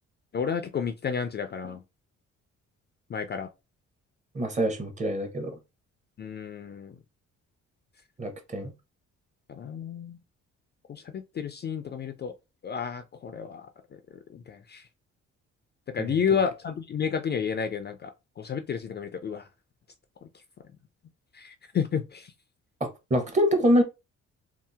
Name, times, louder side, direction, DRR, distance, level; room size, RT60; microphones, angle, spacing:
voice 1, 0.3-1.8 3.1-3.5 6.2-7.0 9.5-10.2 10.9-12.3 12.6-13.7 13.9-14.0 14.3-14.9 15.9-19.5 21.3-22.3, left 7 dB, 35° left, 0.4 m, -31 dB
voice 2, 4.3-5.6 8.2-8.7 22.8-23.8, equal, 25° right, 0.8 m, -25 dB
2.8 x 2.0 x 3.3 m
cardioid pair, 90°, 30 cm